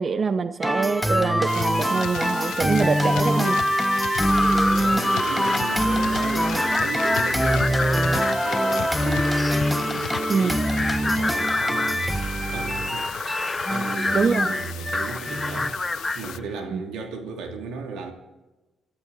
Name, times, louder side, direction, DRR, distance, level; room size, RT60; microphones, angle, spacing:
voice 1, 0.0-3.5 10.3-10.5 14.1-14.5 16.7-16.8, right 5 dB, 40° right, 0.7 m, -24 dB
sound 1, 0.6-15.7, equal, ahead, 1.1 m, -24 dB
sound 2, 1.5-16.4, left 12 dB, 80° left, 0.5 m, -37 dB
sound 3, 4.2-16.4, left 2 dB, 20° left, 0.8 m, -30 dB
voice 2, 4.4-9.4 9.7-12.2 12.5-13.1 13.6-18.1, right 4 dB, 85° right, 2.7 m, -35 dB
23.0 x 13.5 x 4.1 m
cardioid pair, 90°, 0 cm